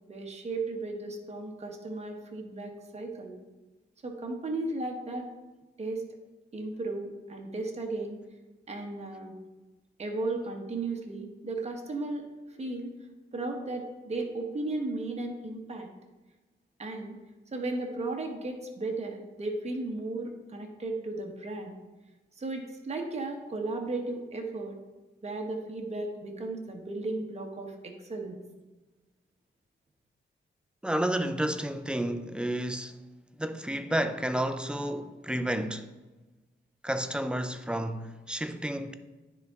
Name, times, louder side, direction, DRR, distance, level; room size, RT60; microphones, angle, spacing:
voice 1, 0.1-3.3 4.0-5.3 5.8-6.0 6.5-8.2 8.7-9.3 10.0-12.3 12.6-12.9 13.3-15.9 16.8-17.2 17.5-21.7 22.4-24.8 25.2-28.4, right 2 dB, 35° right, 1.0 m, -35 dB
voice 2, 30.8-33.0 33.4-35.9 36.8-38.9, right 1 dB, 5° right, 0.4 m, -31 dB
9.7 x 4.0 x 3.5 m
wide cardioid pair, 115°, 20 cm